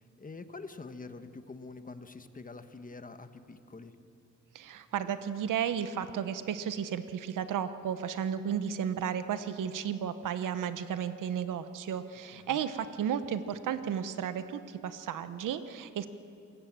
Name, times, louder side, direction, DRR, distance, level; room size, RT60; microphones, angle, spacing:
voice 1, 0.0-3.9 12.3-12.6, left 3 dB, 25° left, 9 dB, 1.3 m, -46 dB
voice 2, 4.5-16.1, right 8 dB, 85° right, 11 dB, 1.0 m, -33 dB
27.0 x 17.0 x 7.5 m, 2.6 s
cardioid pair, 100°, 31 cm